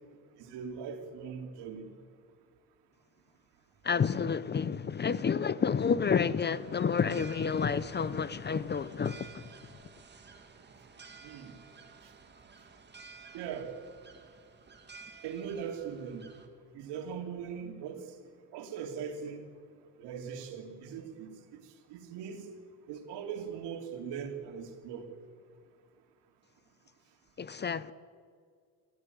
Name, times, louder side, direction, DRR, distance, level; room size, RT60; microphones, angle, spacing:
voice 1, 0.4-1.9 11.2-11.5 13.3-13.7 15.2-16.2 16.7-18.1 18.5-19.4 20.0-21.6 21.9-22.5 22.9-25.1, right 7 dB, 80° right, 3.1 m, -40 dB
voice 2, 3.8-9.5 27.4-27.9, left 6 dB, 25° left, 0.6 m, -30 dB
sound 1, 6.4-16.5, right 5 dB, 25° right, 2.4 m, -53 dB
27.5 x 13.5 x 9.4 m
cardioid pair, 115°, 40 cm